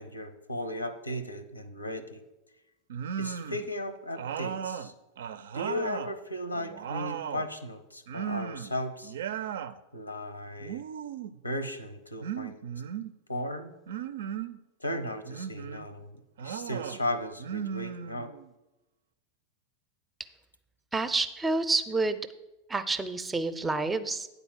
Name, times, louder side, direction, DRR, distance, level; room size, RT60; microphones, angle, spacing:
voice 1, 0.0-2.2 3.2-4.9 5.5-9.1 9.9-10.8 11.4-12.6 13.3-13.7 14.8-18.3, left 1 dB, 85° left, 12 dB, 0.7 m, -36 dB
sound 1, 2.9-3.7 4.2-6.1 6.5-7.5 8.1-8.7 9.0-9.8 10.6-11.4 12.2-13.1 13.9-14.6 15.2-15.9 16.4-17.0 17.4-18.5, right 8 dB, 60° right, 0.4 m, -36 dB
voice 2, 20.9-22.2 22.7-24.3, right 3 dB, 10° right, 11 dB, 0.6 m, -28 dB
9.2 x 4.0 x 7.2 m, 1.0 s
figure-of-eight pair, 90°, 0 cm